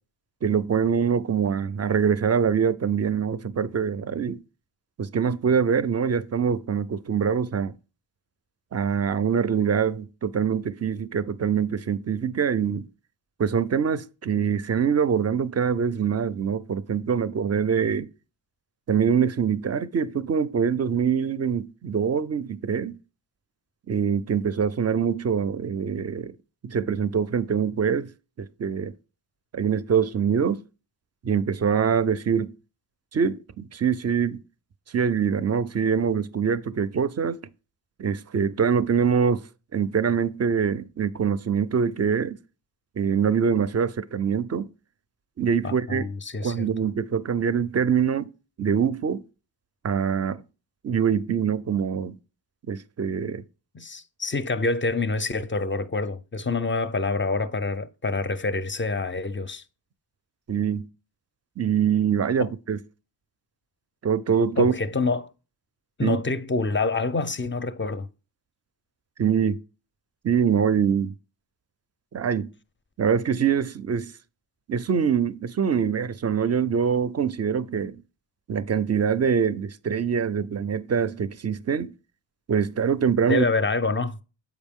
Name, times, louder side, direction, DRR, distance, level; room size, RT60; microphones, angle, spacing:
voice 1, 0.4-4.4 5.0-7.7 8.7-12.9 13.4-18.1 18.9-22.9 23.9-26.3 26.6-28.1 28.4-28.9 29.5-30.6 31.2-32.5 33.1-34.4 34.9-37.4 38.0-39.4 39.7-42.4 43.0-44.7 45.4-46.1 46.4-48.3 48.6-49.2 49.8-50.4 50.8-52.2 52.7-53.4 60.5-60.8 61.6-62.8 64.0-64.7 66.0-66.2 69.2-69.6 70.2-71.1 72.1-72.5 73.0-74.1 74.7-78.0 78.5-81.9 82.5-83.4, right 7 dB, 35° right, 0.4 m, -24 dB
voice 2, 45.6-46.7 53.7-59.6 62.4-62.5 64.6-65.3 66.0-68.1 83.3-84.2, left 3 dB, 25° left, 0.4 m, -26 dB
7.3 x 4.8 x 3.5 m
wide cardioid pair, 75°, 45 cm